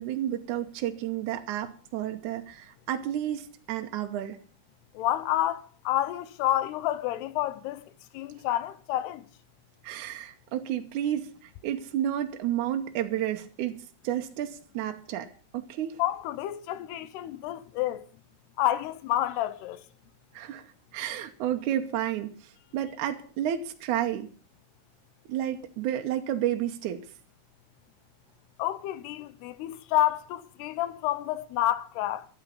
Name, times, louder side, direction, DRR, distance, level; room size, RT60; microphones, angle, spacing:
voice 1, 0.0-4.4 9.8-16.0 20.3-24.3 25.3-27.1, right 11 dB, 75° right, 1.9 m, -31 dB
voice 2, 4.9-7.8 8.1-9.3 16.0-18.1 18.6-19.8 28.6-32.3, left 14 dB, 90° left, 3.0 m, -29 dB
13.5 x 12.0 x 5.5 m
omnidirectional pair, 4.6 m